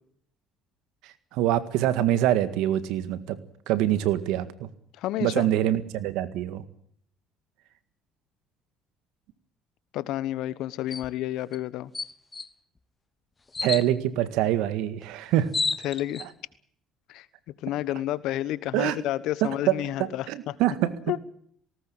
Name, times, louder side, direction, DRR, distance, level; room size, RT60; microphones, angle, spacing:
voice 1, 1.0-3.4 3.7-4.7 5.2-6.6 13.6-15.5 18.7-19.0 19.4-20.9, right 12 dB, 75° right, 13 dB, 1.8 m, -25 dB
voice 2, 5.0-5.5 9.9-11.9 15.8-16.2 17.1-17.3 17.6-20.5 21.1-21.2, left 14 dB, 70° left, 17 dB, 1.2 m, -30 dB
sound 1, 10.9-11.1 11.5-11.6 11.9-12.5 13.5-13.9 15.0-15.1 15.3-16.3, left 4 dB, 25° left, 1.1 m, -30 dB
18.5 x 18.5 x 8.7 m, 0.63 s
supercardioid pair, 75°, 0 cm